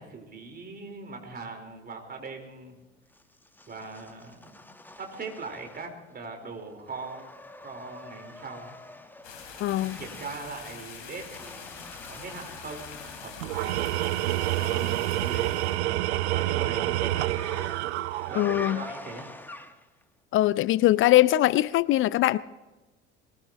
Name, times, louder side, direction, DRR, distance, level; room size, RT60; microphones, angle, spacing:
voice 1, 0.0-2.8 3.7-4.6 5.0-7.3 7.6-8.8 9.7-17.4 18.3-19.3, right 3 dB, 25° right, 4.5 m, -41 dB
sound 1, 3.1-6.2 6.5-13.7 15.3-20.0, left 1 dB, 5° left, 1.3 m, -46 dB
sound 2, 9.2-15.8, left 7 dB, 55° left, 4.2 m, -45 dB
voice 2, 9.6-10.0 18.4-18.8 20.3-22.4, left 15 dB, 40° left, 0.5 m, -21 dB
Tools, 13.4-18.8, right 16 dB, 70° right, 0.6 m, -28 dB
22.0 x 20.0 x 3.1 m
figure-of-eight pair, 65°, 34 cm